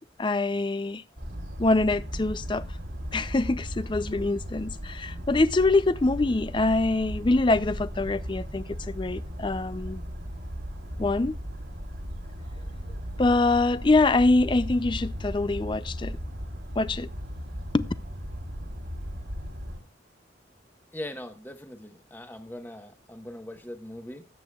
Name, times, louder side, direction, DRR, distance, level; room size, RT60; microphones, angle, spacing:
voice 1, 0.2-1.0 1.6-2.6 3.1-10.0 11.0-11.4 13.2-16.2 16.8-17.1 17.7-17.9, left 2 dB, 25° left, 0.4 m, -24 dB
sound 1, 1.2-19.8, equal, 90° right, 2.9 m, -36 dB
voice 2, 20.9-24.3, left 1 dB, 10° left, 1.1 m, -40 dB
19.5 x 8.2 x 2.3 m
head